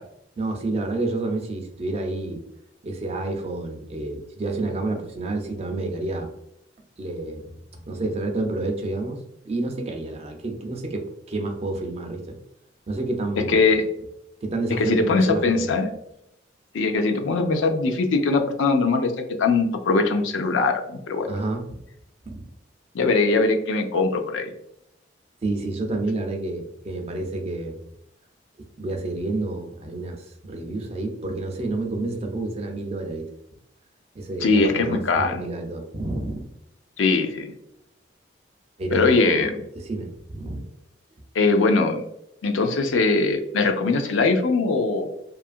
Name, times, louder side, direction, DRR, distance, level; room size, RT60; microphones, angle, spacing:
voice 1, 0.4-2.4 2.8-6.3 7.0-12.4 12.9-13.6 14.4-15.8 21.3-21.6 22.2-22.5 25.4-27.8 28.8-33.3 34.1-36.5 38.8-39.4 39.7-40.6, right 2 dB, 35° right, 3 dB, 0.4 m, -29 dB
voice 2, 13.5-13.8 14.8-15.9 16.7-19.1 19.4-21.3 22.9-24.5 34.4-35.4 37.0-37.5 38.9-39.6 41.3-42.0 42.4-45.1, left 3 dB, 85° left, 5 dB, 0.4 m, -21 dB
2.7 x 2.4 x 2.4 m, 0.80 s
head